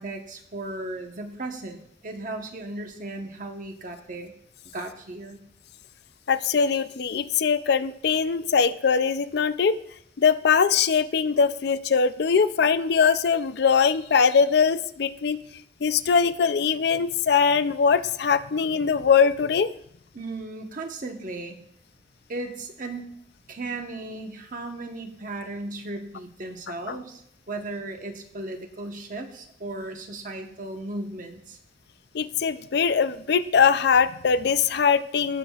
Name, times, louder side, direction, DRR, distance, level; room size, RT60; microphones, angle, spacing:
voice 1, 0.0-4.3 4.7-5.4 20.1-21.6 22.3-23.1 23.5-31.6, right 2 dB, 45° right, 4 dB, 1.1 m, -36 dB
voice 2, 6.3-9.8 10.2-15.4 15.8-19.7 26.9-27.0 32.1-35.4, left 6 dB, 55° left, 12 dB, 0.4 m, -21 dB
18.0 x 7.4 x 2.4 m, 0.70 s
head